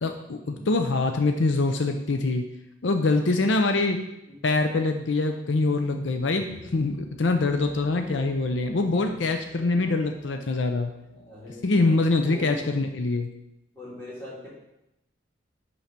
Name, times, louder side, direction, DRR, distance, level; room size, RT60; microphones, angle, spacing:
voice 1, 0.0-2.4 2.8-4.0 4.4-6.5 6.7-10.9 11.6-13.3, left 3 dB, 75° left, 6 dB, 0.6 m, -24 dB
sound 1, 5.3-11.6, left 1 dB, 60° left, 2.1 m, -49 dB
voice 2, 6.4-6.8 7.9-8.2 9.1-9.9 11.1-12.6 13.7-14.5, left 1 dB, 10° left, -9 dB, 3.3 m, -42 dB
5.8 x 5.5 x 5.9 m, 0.87 s
head